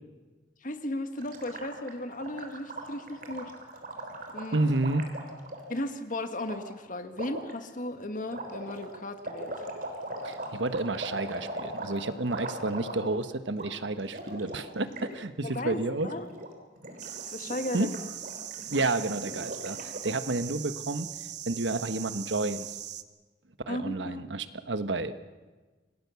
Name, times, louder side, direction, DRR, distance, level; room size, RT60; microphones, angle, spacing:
voice 1, 0.6-3.5 4.3-4.6 5.7-9.6 15.4-16.3 17.3-17.9 23.7-24.2, left 1 dB, 50° left, 8 dB, 1.7 m, -35 dB
Gurgling, 1.2-5.8 6.4-6.6 7.1-7.5 8.3-13.2 13.5-13.7 14.0-15.1 15.4-15.6 15.9-16.5 16.8-20.2, right 1 dB, 50° right, 3.7 m, -40 dB
voice 2, 4.5-5.0 10.2-16.1 17.7-17.9 18.7-21.1 21.5-22.7 23.7-25.1, right 2 dB, 90° right, 10 dB, 1.3 m, -30 dB
sound 1, 17.0-23.0, right 11 dB, 70° right, 1.1 m, -40 dB
27.5 x 18.5 x 7.1 m, 1.3 s
head